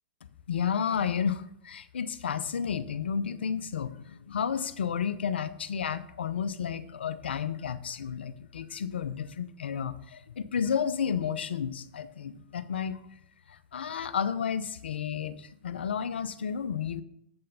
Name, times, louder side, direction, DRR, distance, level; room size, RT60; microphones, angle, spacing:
voice 1, 0.5-13.0 13.5-17.0, left 7 dB, 85° left, 12 dB, 0.7 m, -32 dB
8.0 x 5.7 x 6.5 m, 0.73 s
hypercardioid pair, 115°, 6 cm